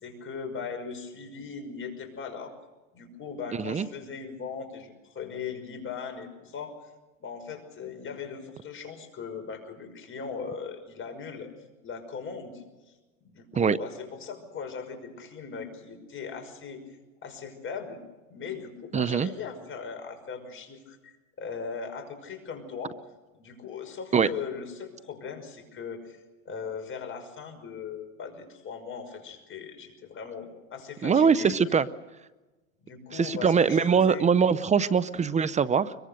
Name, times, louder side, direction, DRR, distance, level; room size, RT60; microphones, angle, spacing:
voice 1, 0.0-2.5 2.9-6.8 7.2-11.5 11.8-12.6 13.2-16.8 17.2-18.0 18.3-23.0 23.3-31.5 32.8-34.3, left 6 dB, 30° left, 6 dB, 5.7 m, -39 dB
voice 2, 18.9-19.3 24.1-24.3 31.0-31.9 33.1-35.9, right 6 dB, 15° right, 16 dB, 0.7 m, -22 dB
24.5 x 23.0 x 6.7 m, 1.1 s
supercardioid pair, 115°, 41 cm